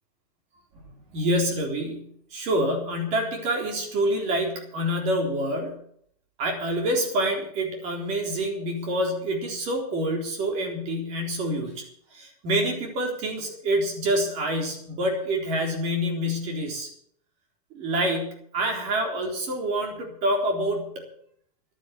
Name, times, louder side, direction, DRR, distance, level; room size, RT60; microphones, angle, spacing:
voice 1, 1.1-5.8 6.4-11.8 12.1-16.9 17.7-20.9, right 1 dB, 35° right, 2 dB, 3.8 m, -27 dB
11.5 x 9.8 x 8.3 m, 0.67 s
supercardioid pair, 180°, 20 cm